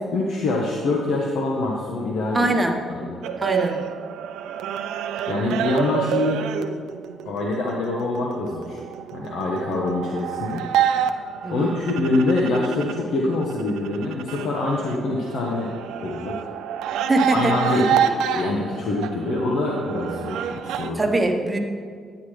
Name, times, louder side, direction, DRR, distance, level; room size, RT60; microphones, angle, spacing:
voice 1, 0.1-2.5 2.9-3.2 5.3-6.4 7.2-8.8 9.1-10.6 11.5-15.7 16.0-16.4 17.3-21.0, left 2 dB, 75° left, -2 dB, 1.2 m, -25 dB
voice 2, 2.3-2.8 3.4-3.8 11.4-11.7 17.1-17.5 20.9-21.6, right 2 dB, 20° right, 3 dB, 1.1 m, -22 dB
sound 1, 3.2-13.0 13.3-20.9, right 8 dB, 90° right, 0.5 m, -28 dB
10.0 x 9.5 x 3.3 m, 2.1 s
cardioid pair, 90°, 0 cm